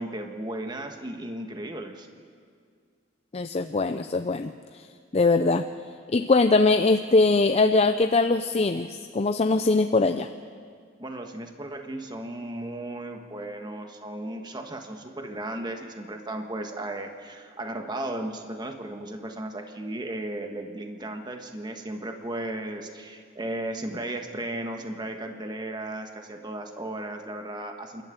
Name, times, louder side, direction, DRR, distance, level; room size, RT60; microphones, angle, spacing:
voice 1, 0.0-2.1 11.0-28.0, right 1 dB, 25° right, 4 dB, 1.4 m, -35 dB
voice 2, 3.3-4.9 5.1-5.7 6.1-10.3, left 3 dB, 35° left, 8 dB, 0.5 m, -22 dB
28.0 x 12.5 x 9.0 m, 2.1 s
head